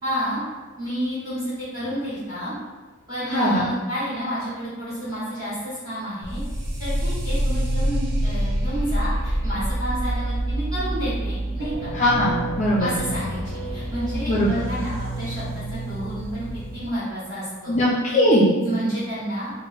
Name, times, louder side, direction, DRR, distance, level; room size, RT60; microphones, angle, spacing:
voice 1, 0.0-0.4 0.8-2.5 3.1-6.4 6.8-11.9 12.8-16.5 16.7-17.7 18.6-19.5, equal, 20° right, -13 dB, 1.5 m, -30 dB
voice 2, 3.3-3.7 11.9-13.0 14.3-14.5 17.7-18.5, equal, 35° left, -6 dB, 0.5 m, -20 dB
sound 1, 6.2-16.9, right 1 dB, 55° right, 0.9 m, -27 dB
3.6 x 2.1 x 4.1 m, 1.3 s
head